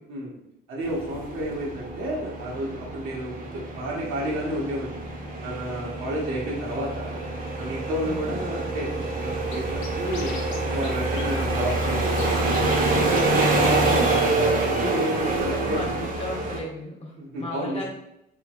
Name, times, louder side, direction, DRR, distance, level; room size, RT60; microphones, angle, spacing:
voice 1, 0.7-5.0 5.4-7.2 7.6-10.4 10.6-14.1 14.6-15.8 17.2-17.9, equal, 90° right, -4 dB, 1.2 m, -31 dB
sound 1, 0.8-16.6, right 2 dB, 45° right, 0.7 m, -26 dB
voice 2, 8.0-8.4 15.1-17.9, left 1 dB, 30° left, -1 dB, 0.9 m, -36 dB
Scratching (performance technique), 9.5-9.6 9.8-10.6 10.8-10.9 11.1-12.3 12.5-12.9 13.2-13.3 13.5-13.6 13.9-14.3, left 3 dB, 80° left, 0.7 m, -38 dB
3.8 x 2.9 x 2.4 m, 0.82 s
cardioid pair, 90°, 20 cm